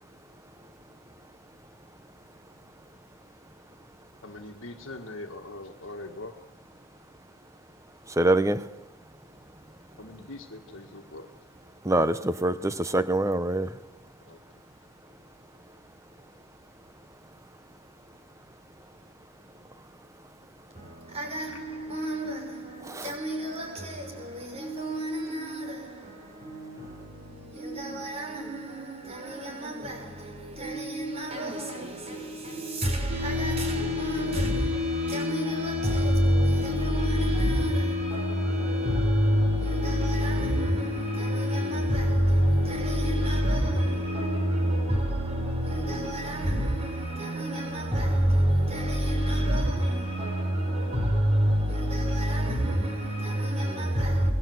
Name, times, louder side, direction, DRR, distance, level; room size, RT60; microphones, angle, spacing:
voice 1, 4.2-6.3 10.0-11.3 14.2-14.4 21.5-21.6, left 2 dB, 70° left, 1.8 m, -42 dB
voice 2, 8.1-8.7 11.8-13.8 22.9-23.1, right 1 dB, 15° right, 1.1 m, -25 dB
voice 3, 20.7-54.3, right 1 dB, 30° right, 6.5 m, -28 dB
sound 1, 33.1-47.1, left 7 dB, 50° right, 4.7 m, -34 dB
28.5 x 21.0 x 8.0 m
head